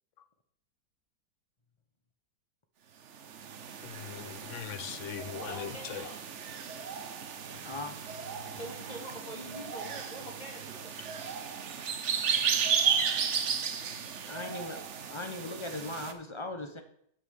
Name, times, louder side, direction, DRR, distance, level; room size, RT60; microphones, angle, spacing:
sound 1, 3.1-16.1, right 7 dB, 55° right, 0.9 m, -34 dB
voice 1, 3.8-6.1 7.5-7.6, left 9 dB, 65° left, 0.7 m, -41 dB
voice 2, 5.4-6.2 8.5-10.9, equal, 25° left, 3.1 m, -44 dB
voice 3, 7.7-8.0 11.0-11.1 14.3-14.8 15.1-16.8, left 2 dB, 45° left, 0.3 m, -38 dB
9.7 x 5.5 x 6.4 m
omnidirectional pair, 1.9 m